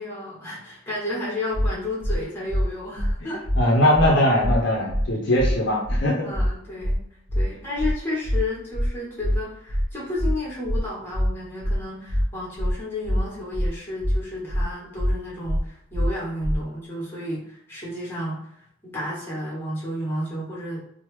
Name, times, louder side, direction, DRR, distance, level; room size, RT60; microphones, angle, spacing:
voice 1, 0.0-3.4 6.2-7.0 7.3-18.4 18.8-20.8, left 1 dB, 10° left, -7 dB, 1.2 m, -32 dB
sound 1, 1.5-1.7 2.0-2.2 2.5-2.6 3.0-3.1 3.4-3.6 3.9-4.1 4.4-4.6 4.9-5.0 5.4-5.5 5.8-6.0 6.3-6.5 6.8-7.0 7.3-7.4 7.8-7.9 8.2-8.4 8.7-8.9 9.2-9.4 9.7-9.8 10.2-10.3 10.6-10.8 11.1-11.3 11.6-11.8 12.1-12.2 12.6-12.7 13.0-13.2 13.5-13.7 14.0-14.2 14.5-14.6 15.0-15.1 15.4-15.6 15.9-16.1 16.4-16.6, equal, 45° right, 0.8 m, -23 dB
voice 2, 3.6-6.3, left 1 dB, 60° left, -2 dB, 0.6 m, -20 dB
3.2 x 2.0 x 3.0 m, 0.71 s
head